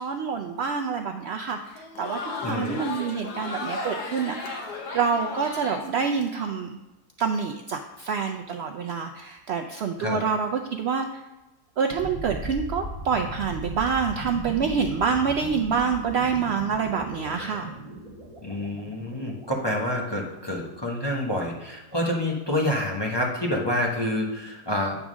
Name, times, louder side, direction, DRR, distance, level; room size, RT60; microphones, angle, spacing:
voice 1, 0.0-2.2 2.5-4.6 4.9-6.8 7.2-11.2 11.8-17.7, right 6 dB, 80° right, 4 dB, 0.5 m, -27 dB
Crowd, 1.7-6.5, left 3 dB, 75° left, 1.5 m, -35 dB
voice 2, 2.4-2.8 10.0-10.2 18.4-25.0, left 1 dB, 20° left, -2 dB, 1.0 m, -27 dB
sound 1, 11.9-20.8, right 1 dB, 20° right, 1.8 m, -38 dB
8.9 x 3.6 x 6.1 m, 1.1 s
omnidirectional pair, 1.7 m